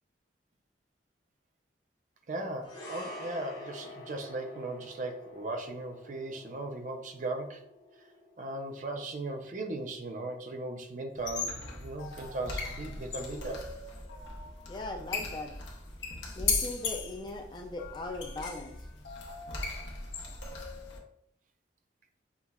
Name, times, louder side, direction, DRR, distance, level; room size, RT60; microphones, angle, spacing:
voice 1, 2.3-7.6 8.4-13.7, right 2 dB, 45° right, 4 dB, 0.4 m, -37 dB
sound 1, 2.6-11.1 11.4-11.6, left 1 dB, 65° left, 1.3 m, -48 dB
sound 2, 11.2-21.0, left 4 dB, 90° left, 0.8 m, -37 dB
voice 2, 14.7-15.6 16.4-18.9, left 2 dB, 25° left, 3 dB, 0.3 m, -39 dB
5.6 x 2.1 x 2.3 m, 0.70 s
head